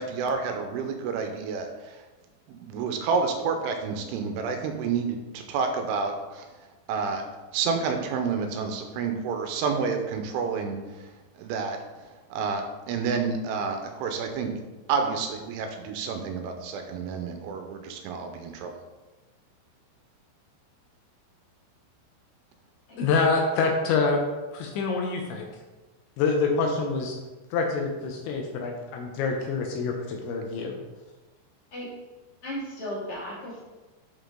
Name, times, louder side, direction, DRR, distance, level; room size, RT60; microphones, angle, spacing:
voice 1, 0.0-2.0 2.5-6.5 6.9-7.2 7.5-11.1 11.4-11.8 12.3-14.5 14.9-18.7, right 5 dB, 90° right, 5 dB, 3.1 m, -29 dB
voice 2, 23.0-24.2 24.5-25.5 26.2-27.1 27.5-30.8, left 4 dB, 80° left, 2 dB, 2.8 m, -26 dB
voice 3, 32.4-33.6, equal, 45° left, -8 dB, 3.0 m, -35 dB
8.2 x 5.1 x 3.8 m, 1.2 s
omnidirectional pair, 5.6 m